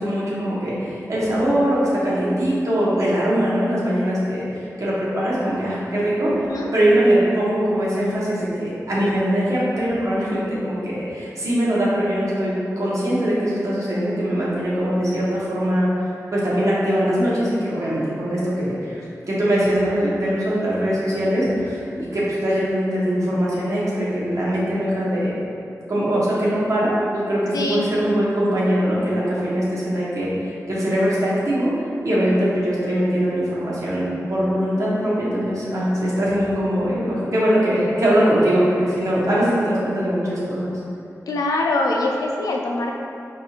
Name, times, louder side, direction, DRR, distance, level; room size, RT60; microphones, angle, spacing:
voice 1, 0.0-6.4 6.7-15.9 16.3-19.0 19.3-25.4 25.9-30.3 30.7-31.7 32.0-40.7, equal, 60° right, -7 dB, 1.1 m, -21 dB
voice 2, 6.2-6.7 27.5-27.8 41.3-42.9, left 2 dB, 90° left, 0 dB, 0.4 m, -23 dB
4.5 x 2.9 x 2.4 m, 2.5 s
cardioid pair, 50°, 6 cm